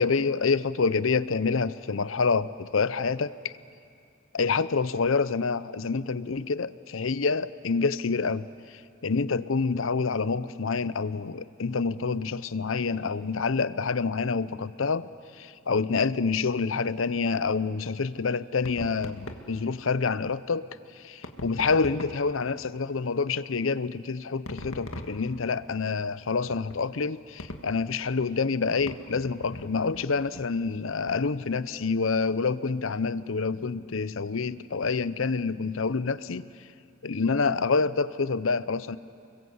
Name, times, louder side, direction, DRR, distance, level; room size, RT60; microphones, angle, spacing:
voice 1, 0.0-3.5 4.3-15.1 15.4-20.7 20.9-36.5 37.0-39.0, left 4 dB, 70° left, 16 dB, 0.7 m, -27 dB
sound 1, 18.6-19.5 21.2-22.4 24.5-25.5 26.5-26.8 27.4-27.8 28.8-30.1 30.3-30.5 31.1-31.3, left 1 dB, 85° left, 1.9 m, -41 dB
30.0 x 22.0 x 7.9 m, 2.4 s
head